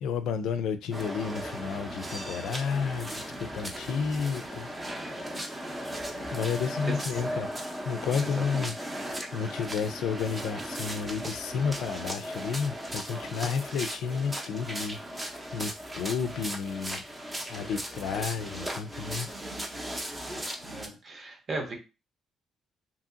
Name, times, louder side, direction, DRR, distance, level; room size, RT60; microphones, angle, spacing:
voice 1, 0.0-4.7 6.3-17.0 17.5-19.3, left 6 dB, 85° left, 0.3 m, -32 dB
sound 1, 0.9-20.9, right 1 dB, 15° right, 0.6 m, -37 dB
voice 2, 8.2-8.8 20.6-21.8, right 2 dB, 45° right, 0.9 m, -37 dB
2.7 x 2.7 x 2.5 m
cardioid pair, 90°, 0 cm